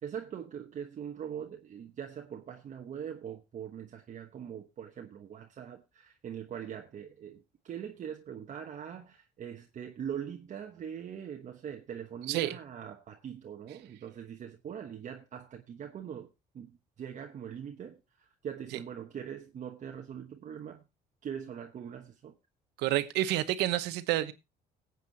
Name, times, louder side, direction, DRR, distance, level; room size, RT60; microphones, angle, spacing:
voice 1, 0.0-20.8 21.2-22.4, right 8 dB, 45° right, 1.1 m, -42 dB
voice 2, 22.8-24.3, right 14 dB, 90° right, 1.0 m, -29 dB
19.5 x 8.2 x 2.8 m
cardioid pair, 110°, 17 cm